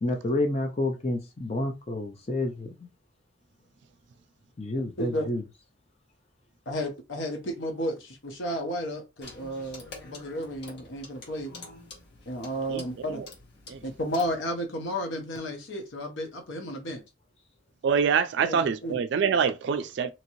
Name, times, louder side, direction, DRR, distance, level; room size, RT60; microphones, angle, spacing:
voice 1, 0.0-2.7 4.6-5.4, left 1 dB, 35° left, 0.6 m, -29 dB
voice 2, 5.0-5.3 6.7-11.5 12.3-13.2 13.8-17.0 18.4-19.0, equal, 75° left, 0.7 m, -33 dB
Clock, 9.2-14.4, left 3 dB, 60° left, 1.2 m, -47 dB
voice 3, 12.7-13.3 13.7-13.8 17.8-20.1, right 6 dB, 60° right, 0.3 m, -26 dB
2.9 x 2.9 x 2.6 m
head